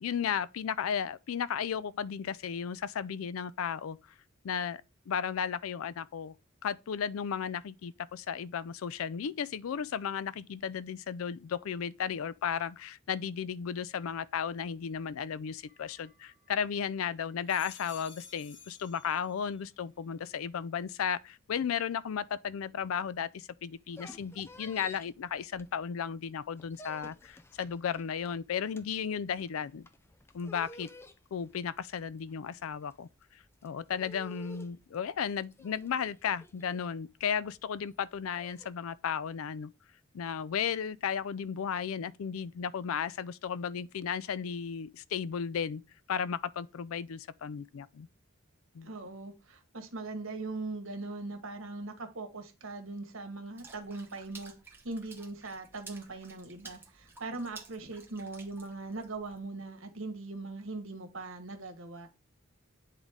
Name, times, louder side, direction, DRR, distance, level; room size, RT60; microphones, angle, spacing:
voice 1, 0.0-4.0 4.4-6.3 6.6-29.9 30.3-30.9 31.3-33.1 33.6-39.7 40.1-45.8 46.1-48.1 48.7-48.9, left 7 dB, 75° left, 0.4 m, -34 dB
sound 1, 15.7-16.8 17.3-19.7 20.1-20.7, left 6 dB, 60° left, 1.1 m, -55 dB
sound 2, 23.7-26.1 26.4-38.7, left 1 dB, 10° left, 0.4 m, -52 dB
voice 2, 48.8-54.5 54.8-62.1, right 3 dB, 70° right, 1.4 m, -40 dB
Water / Splash splatter, 53.6-59.4, right 4 dB, 10° right, 0.9 m, -53 dB
9.0 x 3.8 x 3.6 m
head